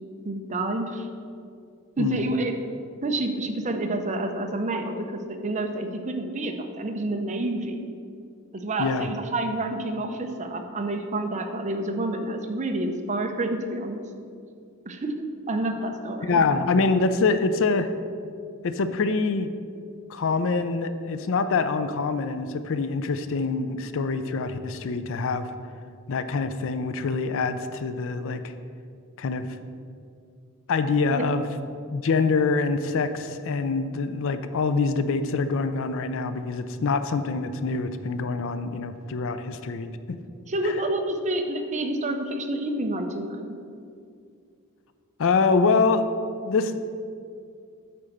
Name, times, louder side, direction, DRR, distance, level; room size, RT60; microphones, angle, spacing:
voice 1, 0.2-1.1 2.0-2.5 3.0-7.9 8.5-14.0 14.9-16.4 31.1-31.3 40.5-43.6, right 2 dB, 35° right, 5 dB, 0.7 m, -28 dB
voice 2, 16.2-17.9 18.6-19.5 20.1-25.5 26.1-28.5 29.2-29.5 30.7-31.5 31.9-40.2 40.6-40.7 45.2-46.1 46.4-46.8, left 4 dB, 65° left, 10 dB, 0.5 m, -25 dB
8.6 x 4.4 x 6.5 m, 2.3 s
head